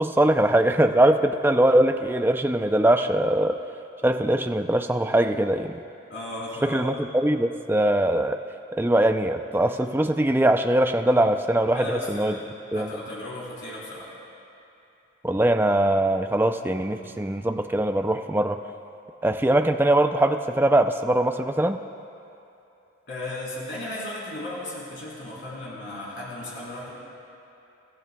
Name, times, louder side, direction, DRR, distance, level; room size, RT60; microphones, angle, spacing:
voice 1, 0.0-3.5 4.0-5.8 6.6-8.4 8.8-12.4 12.7-12.9 15.2-18.6 19.2-21.8, right 1 dB, 10° right, 6 dB, 0.4 m, -21 dB
voice 2, 6.1-6.9 11.7-14.1 23.1-26.9, left 1 dB, 60° left, -7 dB, 3.8 m, -35 dB
28.5 x 13.5 x 2.3 m, 2.8 s
head